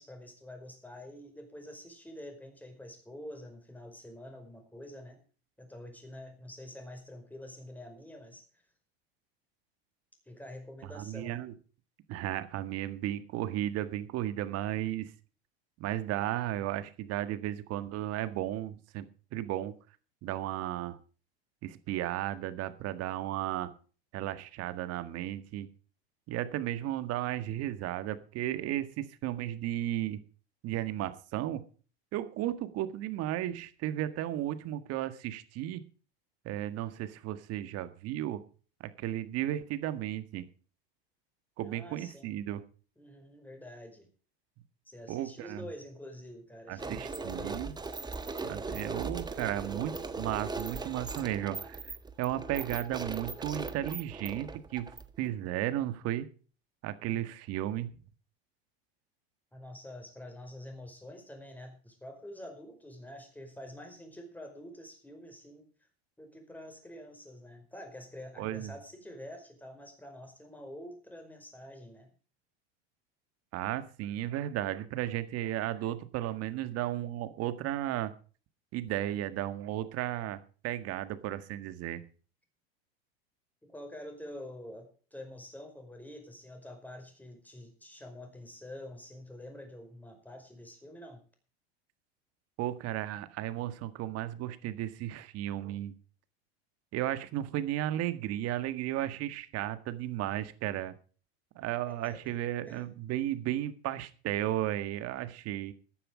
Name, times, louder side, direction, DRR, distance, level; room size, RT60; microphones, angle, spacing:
voice 1, 0.0-5.2 5.6-8.4 10.3-11.4 41.6-42.3 43.0-44.1 44.8-47.7 57.0-57.3 59.5-65.6 66.2-72.1 83.6-91.2 101.9-102.2 102.6-102.9, left 1 dB, 5° left, 5 dB, 5.0 m, -47 dB
voice 2, 10.9-11.5 12.1-15.1 15.8-19.1 19.3-19.7 20.2-21.0 21.6-23.7 24.1-25.7 26.3-30.2 30.6-31.6 32.1-35.8 36.4-38.4 38.8-40.5 41.6-42.6 45.1-45.6 46.7-47.7 48.4-51.9 52.2-56.3 56.8-58.0 68.4-68.7 73.5-78.1 78.7-82.0 92.6-95.9 96.9-101.0 101.6-105.7, right 13 dB, 50° right, 12 dB, 1.8 m, -34 dB
sound 1, 46.8-55.3, right 3 dB, 15° right, 1.4 m, -39 dB
14.0 x 10.0 x 5.0 m, 0.39 s
hypercardioid pair, 95°, 31 cm